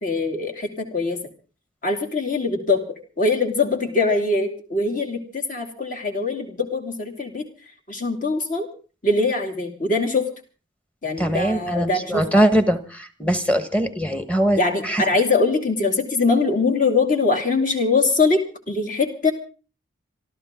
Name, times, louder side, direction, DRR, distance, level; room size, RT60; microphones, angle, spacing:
voice 1, 0.0-1.2 1.8-2.8 3.2-7.5 7.9-8.7 9.0-10.3 11.0-12.2 14.6-19.3, left 3 dB, 40° left, 2 dB, 2.7 m, -22 dB
voice 2, 11.2-15.0, right 1 dB, 5° left, 8 dB, 1.4 m, -21 dB
26.0 x 13.5 x 3.8 m, 0.37 s
head